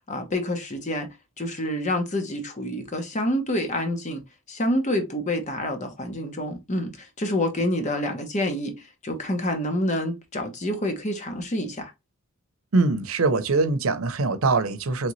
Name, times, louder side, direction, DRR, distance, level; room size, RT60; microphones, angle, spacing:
voice 1, 0.1-1.1 1.4-4.2 4.5-11.9, left 1 dB, 35° left, 1.0 m, -27 dB
voice 2, 12.7-15.1, right 3 dB, 90° right, 0.7 m, -23 dB
3.9 x 3.4 x 3.1 m
head